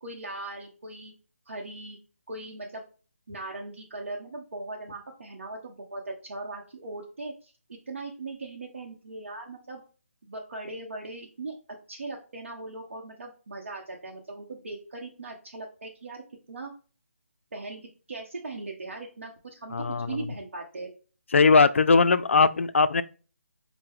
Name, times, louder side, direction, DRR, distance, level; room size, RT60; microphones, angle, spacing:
voice 1, 0.0-1.1 1.5-2.0 2.3-2.8 3.3-7.5 7.9-9.8 10.2-11.5 11.9-16.2 16.5-16.7 17.5-20.9, right 2 dB, 60° right, 0.8 m, -39 dB
voice 2, 19.7-20.3 21.3-23.0, left 4 dB, 60° left, 0.4 m, -20 dB
4.4 x 2.1 x 3.7 m
hypercardioid pair, 170°, 8 cm